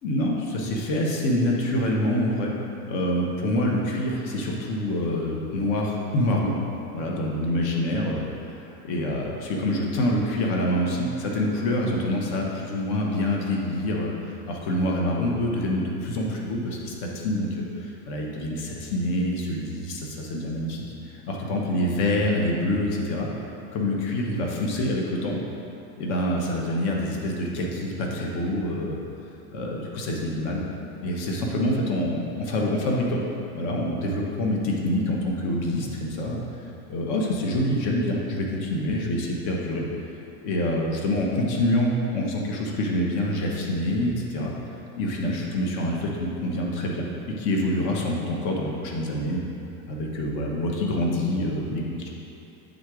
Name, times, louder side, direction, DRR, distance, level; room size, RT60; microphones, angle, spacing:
voice 1, 0.0-2.5 2.9-6.5 6.9-20.8 21.5-23.3 23.7-25.4 26.0-29.0 29.5-30.6 31.0-33.2 33.5-36.4 36.9-39.9 40.4-44.5 45.0-49.5 49.9-52.1, left 1 dB, 50° left, -1 dB, 1.1 m, -26 dB
8.1 x 3.9 x 4.8 m, 2.8 s
supercardioid pair, 155°, 34 cm